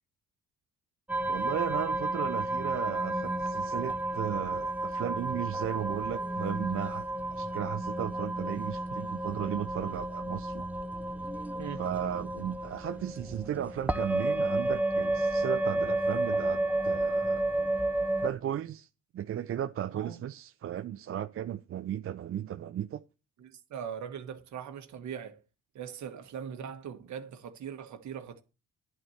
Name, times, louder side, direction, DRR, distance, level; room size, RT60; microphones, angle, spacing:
sound 1, 1.1-18.3, right 2 dB, 5° right, 0.6 m, -31 dB
voice 1, 1.3-7.1 7.3-10.6 11.8-17.5 18.2-18.9 19.1-23.0, right 10 dB, 45° right, 0.5 m, -35 dB
voice 2, 19.9-20.2 23.4-25.4 25.7-28.4, right 8 dB, 70° right, 1.5 m, -40 dB
11.0 x 4.2 x 7.7 m
cardioid pair, 90°, 30 cm